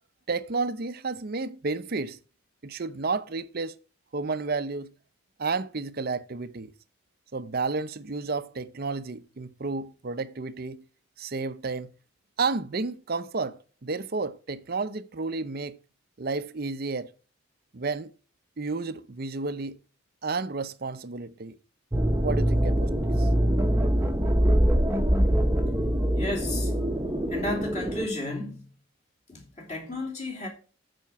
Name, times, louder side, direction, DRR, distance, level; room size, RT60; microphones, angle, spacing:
voice 1, 0.3-2.2 2.6-3.7 4.1-4.9 5.4-6.7 7.3-10.8 11.2-11.9 12.4-15.8 16.2-17.1 17.7-18.1 18.6-19.8 20.2-21.6 22.2-23.3, right 4 dB, 45° right, 0.6 m, -31 dB
sound 1, 21.9-28.1, equal, 10° right, 0.9 m, -24 dB
voice 2, 26.1-26.7 27.3-28.7 29.3-30.5, left 2 dB, 30° left, 3.2 m, -33 dB
13.0 x 5.2 x 4.6 m
head